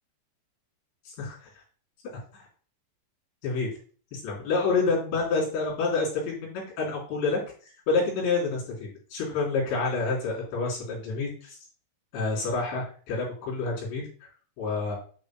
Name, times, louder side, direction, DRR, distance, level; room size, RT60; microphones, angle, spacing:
voice 1, 1.2-1.5 2.3-2.4 3.4-3.7 4.1-7.4 7.9-11.6 12.1-14.3 14.6-15.0, left 3 dB, 70° left, -4 dB, 5.7 m, -28 dB
9.6 x 8.4 x 2.2 m, 0.42 s
omnidirectional pair, 5.5 m